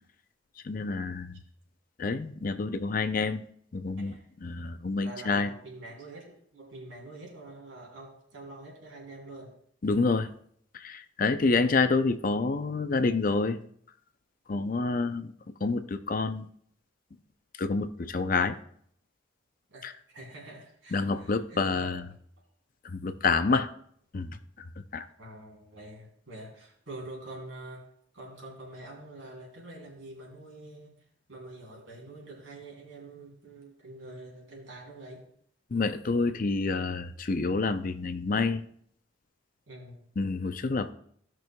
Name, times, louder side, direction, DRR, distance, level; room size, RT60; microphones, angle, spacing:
voice 1, 0.6-1.4 2.0-3.4 3.7-4.1 4.4-5.5 9.8-10.3 10.7-13.6 14.5-15.3 15.6-16.5 17.6-18.5 19.8-19.9 20.9-22.0 22.8-23.7 24.1-24.3 24.9-25.1 35.7-38.6 40.2-40.9, left 3 dB, 45° left, 10 dB, 0.5 m, -28 dB
voice 2, 5.0-9.5 14.8-15.1 19.7-22.0 25.2-27.9 28.1-30.9 31.3-35.2 39.7-40.0, right 2 dB, 75° right, -2 dB, 3.2 m, -46 dB
16.5 x 6.1 x 2.3 m, 0.63 s
head